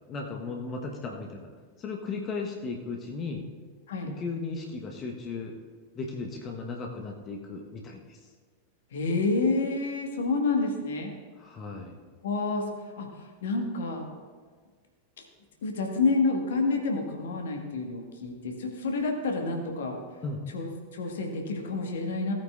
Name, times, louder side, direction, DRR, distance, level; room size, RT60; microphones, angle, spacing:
voice 1, 0.1-1.5 1.8-3.4 4.1-5.5 5.9-8.3 11.4-12.0 20.2-20.4, left 4 dB, 30° left, 0 dB, 1.1 m, -36 dB
voice 2, 8.9-11.1 12.2-14.1 15.2-15.3 15.6-20.0 20.5-22.3, left 3 dB, 60° left, 2 dB, 1.5 m, -29 dB
17.5 x 8.8 x 2.4 m, 1.5 s
figure-of-eight pair, 90°, 0 cm